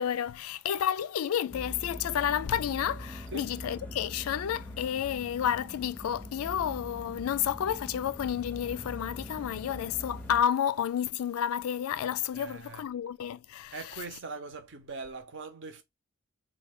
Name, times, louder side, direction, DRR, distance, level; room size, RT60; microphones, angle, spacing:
voice 1, 0.0-14.2, left 9 dB, 85° left, 0.3 m, -31 dB
sound 1, 1.5-10.4, left 1 dB, 5° left, 0.5 m, -43 dB
voice 2, 12.3-12.8 13.7-15.8, right 4 dB, 60° right, 0.8 m, -41 dB
3.2 x 2.3 x 3.5 m
head